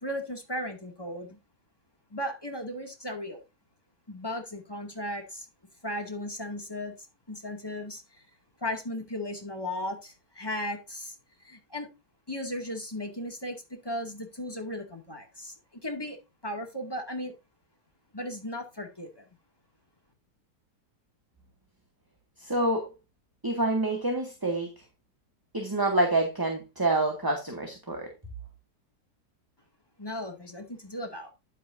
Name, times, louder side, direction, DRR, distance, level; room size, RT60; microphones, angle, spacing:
voice 1, 0.0-1.4 2.1-3.4 4.1-5.5 5.8-8.2 8.6-11.1 11.4-11.9 12.3-15.5 15.8-17.3 18.1-19.3 30.0-31.3, left 1 dB, 15° left, 2.1 m, -36 dB
voice 2, 22.4-22.9 23.4-24.7 25.5-28.1, right 2 dB, 15° right, 1.8 m, -27 dB
10.0 x 9.1 x 2.6 m
omnidirectional pair, 1.8 m